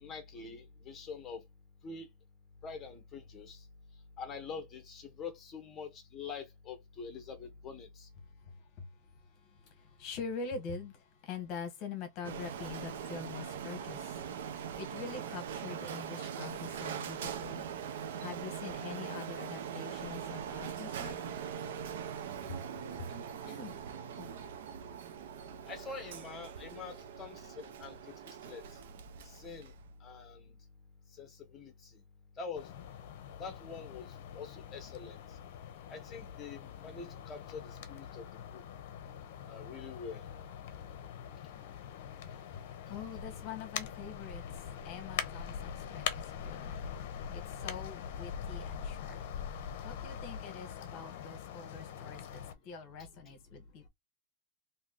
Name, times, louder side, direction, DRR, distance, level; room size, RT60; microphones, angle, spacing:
voice 1, 0.0-1.4 1.8-2.1 2.6-3.6 4.2-8.1 25.7-28.6 29.2-29.7 30.0-30.6 31.2-32.0 32.4-32.7 33.4-34.1 34.3-35.2 35.9-38.6 39.5-40.2, left 5 dB, 15° left, 1.1 m, -45 dB
voice 2, 8.5-8.9 9.4-17.7 18.2-21.2 22.5-22.6 22.9-23.1 23.4-23.7 24.2-24.3 41.5-41.7 42.9-46.8 47.3-49.2 49.5-53.9, left 5 dB, 35° left, 1.2 m, -45 dB
Printer, 12.2-29.9, right 8 dB, 75° right, 0.7 m, -42 dB
sound 1, 32.6-52.5, left 8 dB, 55° left, 0.7 m, -43 dB
3.0 x 2.8 x 3.9 m
supercardioid pair, 175°, 0 cm